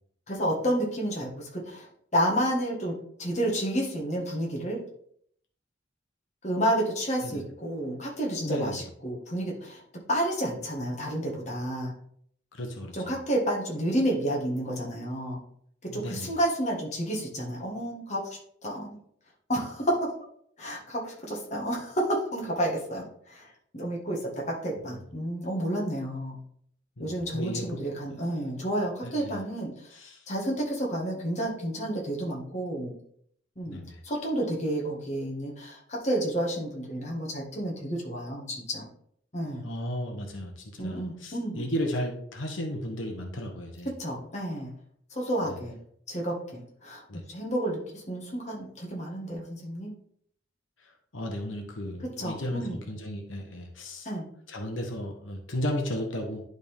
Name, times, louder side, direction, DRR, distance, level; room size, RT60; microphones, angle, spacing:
voice 1, 0.3-1.9 2.1-2.9 3.2-4.8 6.4-9.8 10.1-11.9 12.9-15.4 15.9-18.9 19.5-20.1 20.6-23.4 23.7-26.4 27.0-29.7 30.3-32.9 33.6-33.8 34.0-38.9 39.3-39.7 40.8-41.7 44.0-44.7 45.1-45.8 46.1-47.0 47.3-49.9 52.0-52.8 54.0-54.2, right 1 dB, 35° left, -2 dB, 1.7 m, -30 dB
voice 2, 8.4-8.8 12.5-13.1 15.9-16.3 27.0-28.0 29.0-29.4 29.9-30.2 33.7-34.0 39.6-43.9 47.1-47.2 51.1-54.1 54.5-56.4, equal, 90° left, 3 dB, 1.2 m, -34 dB
11.0 x 3.9 x 3.5 m, 0.67 s
head